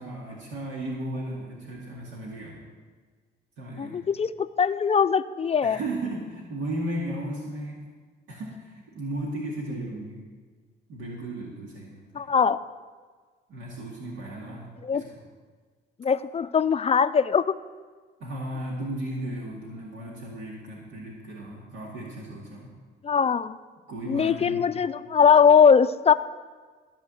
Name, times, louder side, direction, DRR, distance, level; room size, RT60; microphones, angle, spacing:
voice 1, 0.0-2.6 3.6-4.1 5.6-7.8 8.3-10.2 10.9-12.3 13.5-15.2 18.2-22.7 23.9-24.7, right 1 dB, 85° right, -3 dB, 2.2 m, -35 dB
voice 2, 3.8-5.8 12.1-12.6 14.8-15.0 16.0-17.6 23.0-23.6 24.1-26.1, left 6 dB, 30° left, 13 dB, 0.4 m, -21 dB
14.0 x 5.1 x 7.7 m, 1.5 s
cardioid pair, 90°, 20 cm